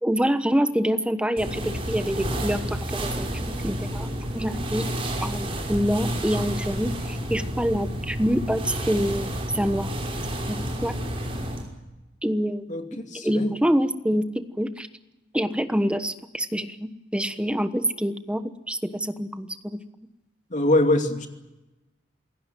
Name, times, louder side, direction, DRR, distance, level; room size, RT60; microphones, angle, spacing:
voice 1, 0.0-4.1 4.3-4.9 5.2-9.9 10.5-10.9 12.2-12.8 13.1-14.9 15.3-19.8, equal, 5° right, 9 dB, 1.2 m, -26 dB
sound 1, 1.4-11.7, equal, 30° right, 5.6 m, -30 dB
voice 2, 13.1-13.5 20.5-21.3, left 1 dB, 40° left, 5 dB, 2.8 m, -22 dB
27.5 x 17.0 x 9.1 m, 1.0 s
head